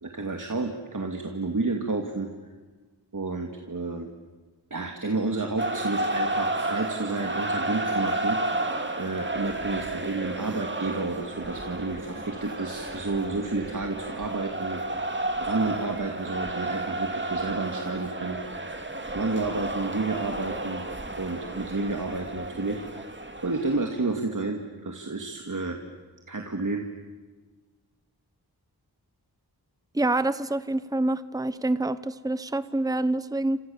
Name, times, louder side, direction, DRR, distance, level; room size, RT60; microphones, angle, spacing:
voice 1, 0.0-2.3 3.1-4.1 4.7-8.4 8.9-15.1 15.4-18.6 19.1-20.8 21.2-22.8 23.4-25.8 26.3-26.8, right 3 dB, 50° right, 3 dB, 2.5 m, -30 dB
sound 1, 5.6-24.1, right 2 dB, 30° right, 2.5 m, -32 dB
voice 2, 29.9-33.6, right 2 dB, 10° right, 14 dB, 0.9 m, -26 dB
29.5 x 27.0 x 7.2 m, 1.3 s
wide cardioid pair, 85°, 41 cm